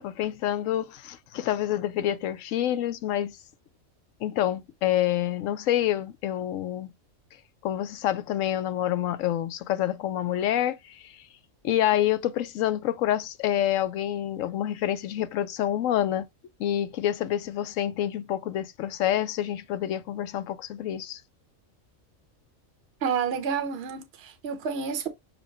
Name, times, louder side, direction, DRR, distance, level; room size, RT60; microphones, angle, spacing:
voice 1, 0.0-3.4 4.2-6.9 7.6-11.2 11.6-16.3 16.6-21.2, left 12 dB, 75° left, 0.9 m, -27 dB
voice 2, 23.0-25.1, right 6 dB, 55° right, 1.0 m, -29 dB
5.7 x 2.1 x 4.0 m
omnidirectional pair, 1.4 m